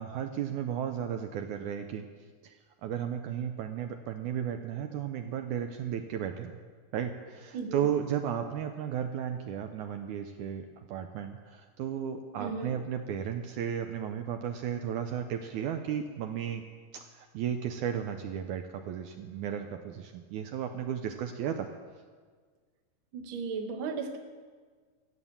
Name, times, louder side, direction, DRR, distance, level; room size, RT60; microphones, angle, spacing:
voice 1, 0.0-2.1 2.4-6.6 6.9-16.6 16.9-21.7, right 9 dB, 80° right, 5 dB, 1.9 m, -34 dB
voice 2, 7.5-7.9 12.4-12.7 23.1-24.2, right 5 dB, 60° right, 4 dB, 1.3 m, -35 dB
15.0 x 8.2 x 7.3 m, 1.5 s
omnidirectional pair, 3.9 m